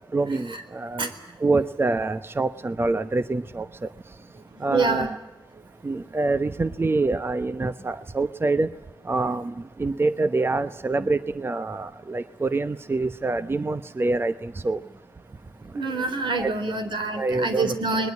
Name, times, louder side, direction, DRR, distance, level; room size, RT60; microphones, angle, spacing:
voice 1, 0.1-1.1 1.4-3.7 4.6-5.2 5.8-8.7 9.1-9.5 9.8-14.8 16.4-16.5 17.2-17.8, right 3 dB, 30° right, 12 dB, 0.8 m, -25 dB
voice 2, 4.5-5.2 11.0-11.1 15.7-18.1, right 3 dB, 80° right, 8 dB, 3.9 m, -26 dB
21.5 x 21.0 x 9.6 m, 0.99 s
wide cardioid pair, 90°, 8 cm